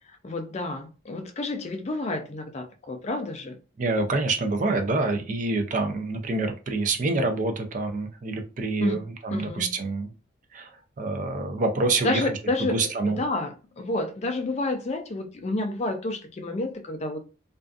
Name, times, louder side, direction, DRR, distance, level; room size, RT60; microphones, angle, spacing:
voice 1, 0.2-3.6 8.8-8.9 9.3-9.7 12.0-17.2, left 2 dB, 30° left, 0.3 m, -30 dB
voice 2, 3.8-10.1 10.5-12.3 12.7-13.2, right 3 dB, 40° right, 0.4 m, -27 dB
2.5 x 2.3 x 2.3 m
head